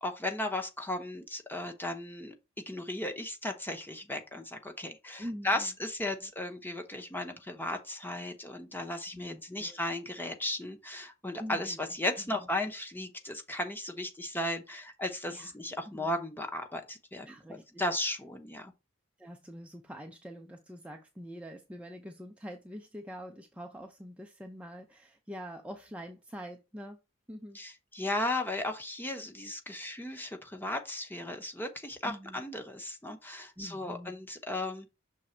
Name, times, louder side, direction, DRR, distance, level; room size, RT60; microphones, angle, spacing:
voice 1, 0.0-18.7 27.5-34.9, left 1 dB, 10° left, 0.9 m, -36 dB
voice 2, 5.2-5.7 9.1-9.8 11.4-11.8 12.2-12.5 15.2-15.5 15.9-16.1 17.2-17.8 19.2-27.0 27.3-27.6 32.0-32.4 33.6-34.2, equal, 5° right, 0.5 m, -45 dB
6.3 x 3.5 x 4.3 m
head